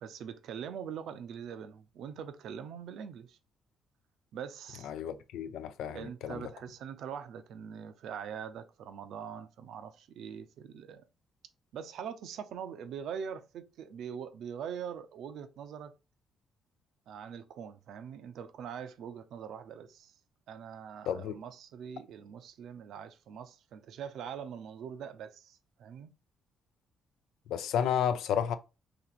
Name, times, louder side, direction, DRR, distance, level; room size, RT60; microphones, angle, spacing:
voice 1, 0.0-3.4 4.3-5.0 5.9-11.0 11.7-15.9 17.1-20.2 20.5-26.1, right 7 dB, 75° right, 0.5 m, -43 dB
voice 2, 4.8-6.4 21.1-21.4 27.5-28.5, left 8 dB, 85° left, 0.4 m, -32 dB
2.9 x 2.8 x 4.0 m
cardioid pair, 80°, 0 cm